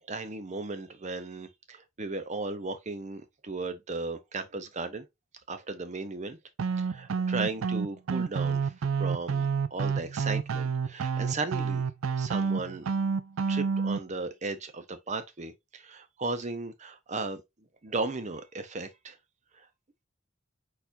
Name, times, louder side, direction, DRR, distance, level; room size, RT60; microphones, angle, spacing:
voice 1, 0.1-5.0 5.5-6.4 6.8-8.7 9.0-11.8 12.2-12.9 13.5-17.4 17.8-19.2 19.6-19.7, right 3 dB, 35° right, 0.7 m, -36 dB
sound 1, 6.6-14.0, right 5 dB, 90° right, 0.4 m, -29 dB
4.3 x 4.2 x 2.6 m
head